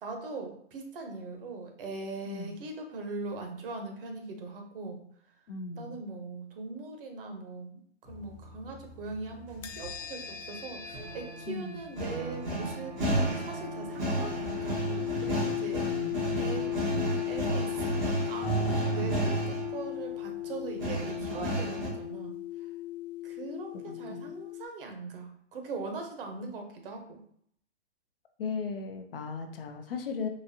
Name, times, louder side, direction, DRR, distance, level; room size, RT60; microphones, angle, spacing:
voice 1, 0.0-5.0 5.8-16.1 16.4-16.8 17.3-22.7 23.2-27.2, right 3 dB, 45° right, 4 dB, 0.8 m, -41 dB
voice 2, 5.5-6.0 11.5-11.8 15.8-16.3 19.0-19.2 23.9-24.2 28.4-30.3, left 4 dB, 50° left, 5 dB, 0.5 m, -37 dB
sound 1, 8.1-9.9 10.9-19.8 20.8-21.9, right 2 dB, 10° right, 0.5 m, -32 dB
sound 2, 9.6-24.7, left 15 dB, 90° left, 0.6 m, -37 dB
3.9 x 2.6 x 2.7 m, 0.66 s
hypercardioid pair, 140°, 37 cm